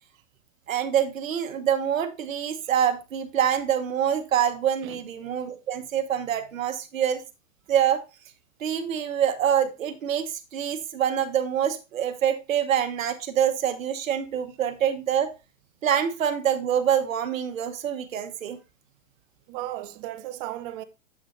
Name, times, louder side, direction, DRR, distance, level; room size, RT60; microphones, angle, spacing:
voice 1, 0.7-7.2 7.7-8.0 8.6-15.3 15.8-18.6, right 9 dB, 85° right, 1.1 m, -25 dB
voice 2, 19.5-20.8, right 14 dB, 45° right, 0.7 m, -35 dB
7.7 x 6.1 x 2.6 m
hypercardioid pair, 120°, 39 cm